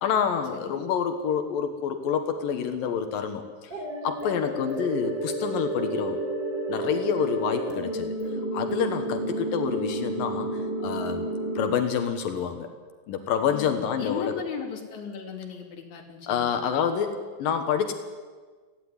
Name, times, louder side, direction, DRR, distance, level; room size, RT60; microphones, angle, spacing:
voice 1, 0.0-3.7 4.0-6.2 6.7-8.1 8.5-11.3 11.6-12.7 13.1-14.4 16.3-17.9, left 7 dB, 75° left, 7 dB, 2.9 m, -28 dB
sound 1, 3.7-11.7, right 1 dB, 30° right, 4.4 m, -31 dB
voice 2, 9.1-9.4 13.5-16.6, left 6 dB, 55° left, 2 dB, 3.9 m, -37 dB
17.5 x 16.0 x 9.7 m, 1.5 s
omnidirectional pair, 4.2 m